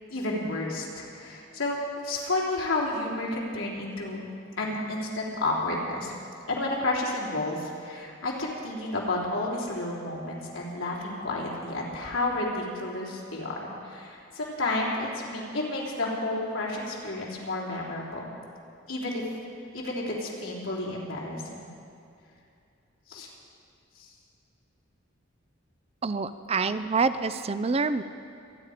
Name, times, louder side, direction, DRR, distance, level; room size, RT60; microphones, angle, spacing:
voice 1, 0.1-1.8 2.0-4.3 4.6-6.1 6.5-18.3 18.9-19.2 19.7-21.7 23.1-23.3, left 2 dB, 80° left, -4 dB, 3.4 m, -31 dB
voice 2, 26.0-28.0, right 4 dB, 30° right, 12 dB, 0.4 m, -26 dB
25.5 x 10.0 x 5.0 m, 2.6 s
head